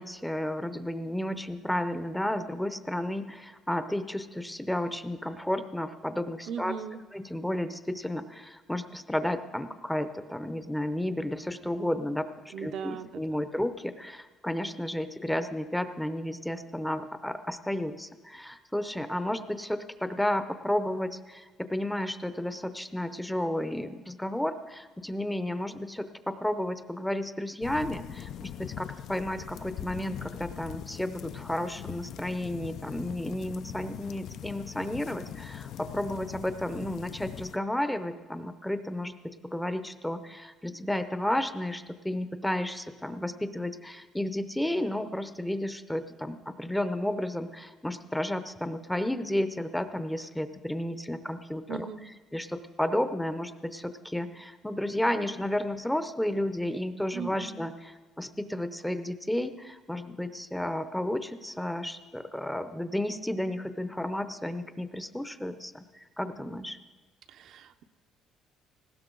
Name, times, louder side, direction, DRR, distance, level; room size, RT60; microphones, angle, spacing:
voice 1, 0.0-6.8 7.1-66.8, left 1 dB, 5° left, 10 dB, 0.7 m, -32 dB
voice 2, 6.5-7.0 12.5-13.1 51.7-52.1 57.1-57.6 67.3-67.8, right 7 dB, 60° right, 8 dB, 0.7 m, -38 dB
sound 1, 27.6-37.6, left 10 dB, 60° left, 0.5 m, -42 dB
19.0 x 16.5 x 3.9 m, 1.3 s
cardioid pair, 135°, 0 cm